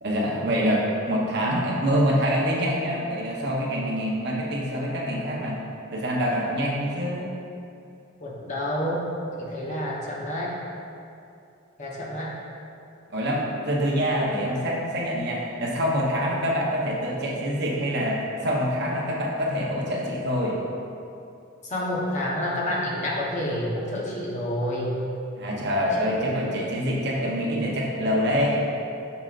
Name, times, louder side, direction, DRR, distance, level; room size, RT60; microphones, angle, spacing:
voice 1, 0.0-5.6 5.9-7.3 13.1-20.6 25.4-28.6, equal, 55° right, -3 dB, 1.0 m, -25 dB
voice 2, 8.2-9.1 9.4-10.5 11.8-12.4 21.7-25.0 28.0-28.3, left 1 dB, 35° left, -4 dB, 1.0 m, -29 dB
7.0 x 6.5 x 2.5 m, 2.6 s
head